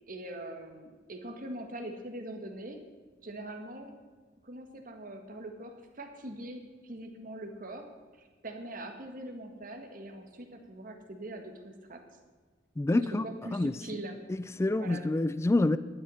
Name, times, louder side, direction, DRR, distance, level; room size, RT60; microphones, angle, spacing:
voice 1, 0.1-2.8 3.2-3.9 4.4-7.9 8.4-12.0 12.9-14.2 14.7-15.0, right 1 dB, 45° right, 1.7 m, -42 dB
voice 2, 12.8-13.2 13.5-13.8 14.3-15.8, left 2 dB, 15° left, 0.3 m, -27 dB
12.0 x 11.0 x 5.7 m
head